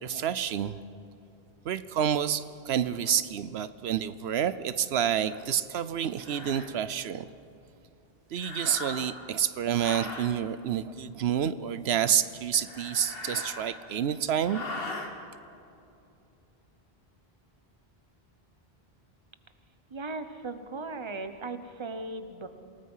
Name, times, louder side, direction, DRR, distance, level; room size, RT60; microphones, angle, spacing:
voice 1, 0.0-0.8 1.6-7.3 8.3-14.6, right 9 dB, 80° right, 14 dB, 0.9 m, -29 dB
sound 1, 5.3-5.4 6.2-6.7 8.3-9.3 9.7-10.4 12.5-14.0 14.4-15.1, left 3 dB, 65° left, 2.0 m, -39 dB
voice 2, 19.9-22.5, right 3 dB, 30° right, 10 dB, 1.0 m, -37 dB
28.0 x 18.5 x 5.6 m, 2.7 s
omnidirectional pair, 1.0 m